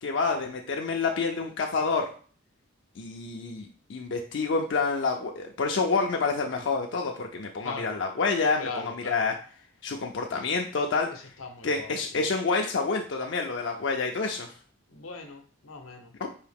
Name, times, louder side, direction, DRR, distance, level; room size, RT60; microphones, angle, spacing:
voice 1, 0.0-2.1 3.0-9.4 9.8-11.3 11.6-14.5 16.2-16.3, left 4 dB, 60° left, 2 dB, 0.4 m, -28 dB
voice 2, 8.6-9.3 11.4-12.3 14.9-16.1, left 3 dB, 90° left, 5 dB, 0.8 m, -40 dB
4.6 x 2.7 x 3.5 m, 0.42 s
head